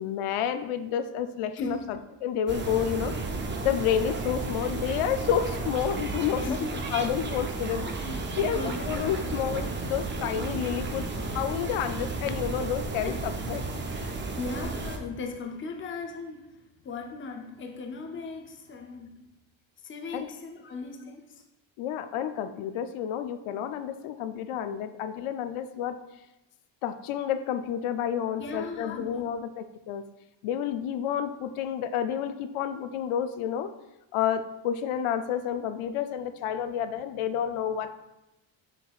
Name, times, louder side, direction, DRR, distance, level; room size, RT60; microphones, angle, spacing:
voice 1, 0.0-3.1 3.6-6.5 6.9-7.9 8.4-13.6 14.0-14.1 20.1-20.3 21.8-26.0 26.8-30.0 30.4-33.7 34.1-37.9, left 9 dB, 80° left, 10 dB, 0.5 m, -30 dB
voice 2, 1.5-1.9 6.4-6.7 7.8-8.2 8.5-8.9 13.0-13.1 14.4-19.2 19.8-21.4 28.4-29.2, left 3 dB, 25° left, 4 dB, 0.5 m, -37 dB
sound 1, 2.5-15.0, right 3 dB, 25° right, 0.4 m, -33 dB
7.0 x 5.9 x 2.3 m, 0.94 s
cardioid pair, 175°, 50 cm